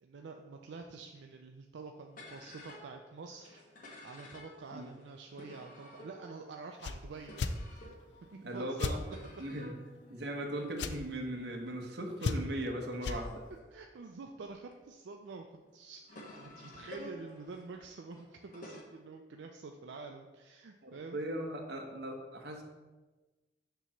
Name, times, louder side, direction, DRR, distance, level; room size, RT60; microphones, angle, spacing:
voice 1, 0.0-7.3 7.7-7.9 8.4-9.2 13.0-13.2 13.7-21.2, right 4 dB, 85° right, 3 dB, 0.4 m, -48 dB
sound 1, 2.1-14.7 15.4-18.8, left 1 dB, 50° left, 1.1 m, -53 dB
sound 2, 6.8-7.0 7.4-7.6 8.8-9.0 10.8-11.0 12.2-12.6 13.0-13.2, left 4 dB, 70° left, 0.4 m, -33 dB
voice 2, 8.3-9.0 9.4-9.7 10.1-13.4 20.8-22.6, right 1 dB, 70° right, 2 dB, 1.0 m, -38 dB
6.8 x 3.0 x 5.7 m, 1.2 s
head